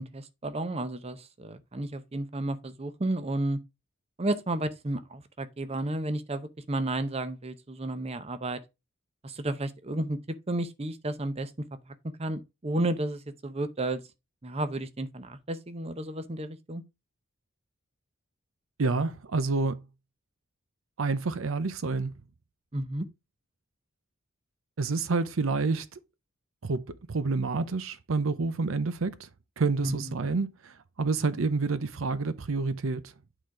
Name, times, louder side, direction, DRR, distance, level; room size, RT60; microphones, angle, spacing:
voice 1, 0.0-3.6 4.2-8.6 9.2-10.2 10.5-11.5 11.9-12.0 12.2-14.0 14.4-16.8 22.7-23.1 29.8-30.1, right 1 dB, 30° right, 0.7 m, -32 dB
voice 2, 18.8-19.9 21.0-22.1 24.8-25.9 26.6-29.3 29.6-33.1, right 3 dB, 75° right, 0.6 m, -28 dB
9.1 x 3.9 x 4.6 m
head